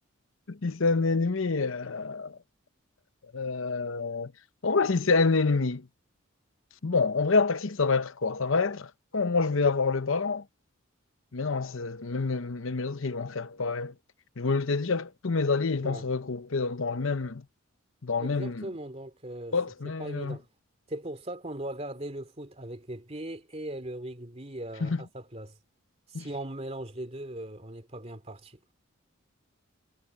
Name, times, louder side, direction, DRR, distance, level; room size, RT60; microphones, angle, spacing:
voice 1, 0.5-2.4 3.3-4.3 4.6-5.9 6.8-10.4 11.3-13.9 14.4-17.4 18.0-18.6 19.5-20.4 24.8-25.0 26.1-26.2, left 4 dB, 70° left, 0.8 m, -27 dB
voice 2, 18.2-19.6 20.0-20.5 20.9-25.6 26.1-28.6, right 1 dB, 30° right, 2.9 m, -39 dB
head